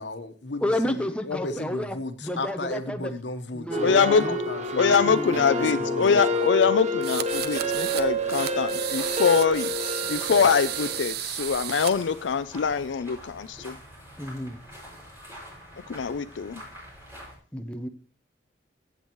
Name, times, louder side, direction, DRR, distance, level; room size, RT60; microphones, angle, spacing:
voice 1, 0.0-5.1 5.6-6.6, left 2 dB, 70° left, 8 dB, 1.2 m, -35 dB
voice 2, 0.6-2.0 2.2-3.1 3.5-4.4 5.1-5.8 14.2-14.6 17.5-17.9, left 1 dB, 5° left, 7 dB, 0.7 m, -31 dB
sound 1, 3.7-11.0, equal, 40° right, 1.0 m, -28 dB
voice 3, 3.8-4.4 4.8-13.8 15.9-16.6, left 6 dB, 90° left, 11 dB, 0.5 m, -24 dB
sound 2, 7.0-8.0 8.3-11.9, right 12 dB, 60° right, 0.5 m, -33 dB
sound 3, 7.3-17.4, equal, 15° right, 6.0 m, -45 dB
15.5 x 8.0 x 3.1 m, 0.40 s
head